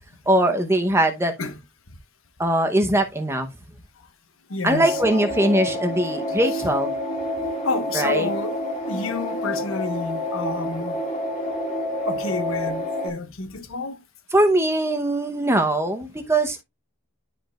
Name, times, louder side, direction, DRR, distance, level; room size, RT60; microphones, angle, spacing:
voice 1, 0.3-1.3 2.4-3.5 4.6-6.9 7.9-8.3 14.3-16.6, right 1 dB, 10° right, 0.9 m, -21 dB
voice 2, 4.5-5.2 6.5-6.6 7.6-11.0 12.0-14.0, left 3 dB, 65° left, 1.2 m, -29 dB
sound 1, 4.7-13.1, left 1 dB, 30° left, 2.2 m, -28 dB
11.0 x 5.1 x 2.4 m
head